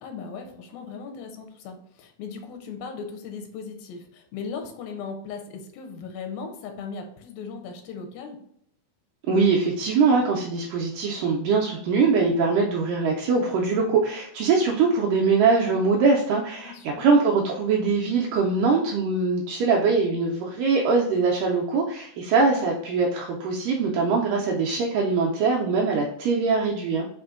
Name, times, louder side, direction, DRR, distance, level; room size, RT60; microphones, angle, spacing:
voice 1, 0.0-8.4 16.6-17.1, left 5 dB, 85° left, 5 dB, 2.4 m, -37 dB
voice 2, 9.3-27.1, right 4 dB, 80° right, -2 dB, 1.9 m, -22 dB
6.1 x 2.5 x 2.5 m, 0.69 s
omnidirectional pair, 4.2 m